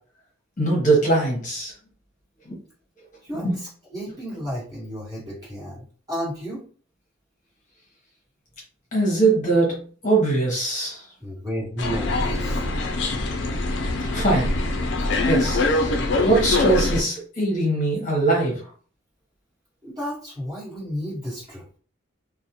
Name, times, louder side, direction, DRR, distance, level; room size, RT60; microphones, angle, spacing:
voice 1, 0.6-1.7 2.5-2.6 3.3-3.5 8.9-11.0 14.1-14.5 15.2-18.6, right 2 dB, 40° left, -2 dB, 0.8 m, -22 dB
voice 2, 3.2-6.6 11.2-12.6 19.8-21.6, equal, 20° right, -7 dB, 1.3 m, -32 dB
sound 1, 11.8-17.0, left 2 dB, 60° left, 0.4 m, -23 dB
2.4 x 2.1 x 2.8 m, 0.41 s
head